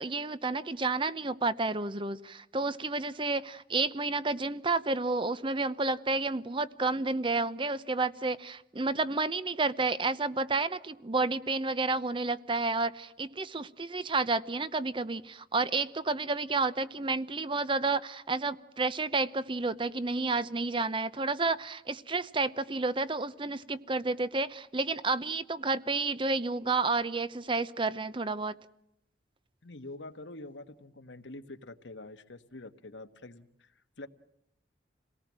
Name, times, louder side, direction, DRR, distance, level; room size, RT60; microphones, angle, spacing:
voice 1, 0.0-28.5, right 3 dB, 30° right, 0.8 m, -30 dB
voice 2, 29.6-34.1, left 2 dB, 85° left, 1.4 m, -46 dB
28.0 x 18.5 x 7.5 m
head